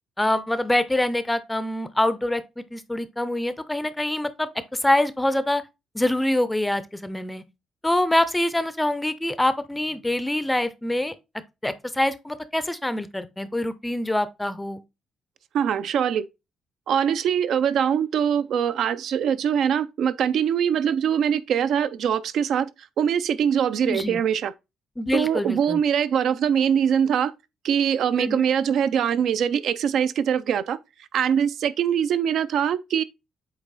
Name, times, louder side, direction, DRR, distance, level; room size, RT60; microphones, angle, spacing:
voice 1, 0.2-5.6 5.9-7.4 7.8-11.1 11.6-14.8 23.8-24.2 25.0-25.8 28.2-28.4, left 1 dB, 5° left, 0.5 m, -25 dB
voice 2, 15.5-16.3 16.9-22.7 23.0-24.5 25.1-27.3 27.6-30.8 31.1-33.0, right 8 dB, 60° right, 0.4 m, -23 dB
8.3 x 3.0 x 4.0 m
cardioid pair, 160°, 0 cm